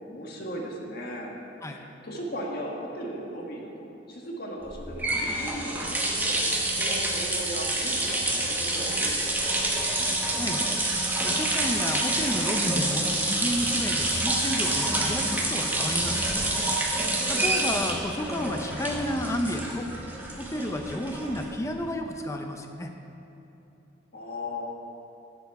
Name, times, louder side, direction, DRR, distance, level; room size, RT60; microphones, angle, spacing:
voice 1, 0.0-1.4 1.6-9.5 17.1-17.9 24.1-24.7, equal, 55° left, -1 dB, 1.5 m, -37 dB
sound 1, 4.7-21.7, right 1 dB, 10° right, 1.1 m, -27 dB
voice 2, 10.3-10.6 11.2-16.3 17.3-19.9 20.4-22.9, left 1 dB, 15° left, 4 dB, 0.6 m, -31 dB
13.0 x 7.0 x 4.8 m, 2.9 s
head